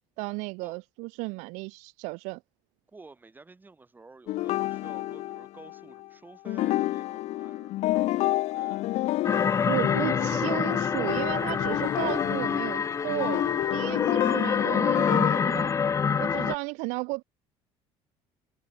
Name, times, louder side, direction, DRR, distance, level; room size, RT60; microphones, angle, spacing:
voice 1, 0.2-2.4 9.7-15.7 16.2-17.2, right 28 dB, 85° right, 1.8 m, -34 dB
voice 2, 2.9-8.8, right 3 dB, 15° right, 7.1 m, -51 dB
sound 1, 4.3-6.1 6.5-15.4, left 16 dB, 65° left, 3.2 m, -30 dB
sound 2, 9.2-16.5, left 6 dB, 25° left, 0.7 m, -27 dB
cardioid pair, 120°, 12 cm